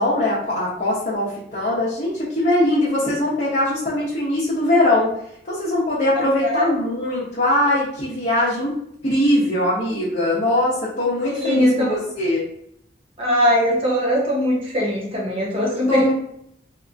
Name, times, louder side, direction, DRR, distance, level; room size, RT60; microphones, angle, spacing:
voice 1, 0.0-5.1 5.5-8.7 9.0-12.4 15.9-16.1, left 1 dB, 40° left, -8 dB, 0.8 m, -21 dB
voice 2, 11.2-12.1 13.2-16.1, equal, 30° right, -4 dB, 0.9 m, -20 dB
2.7 x 2.4 x 2.5 m, 0.71 s
head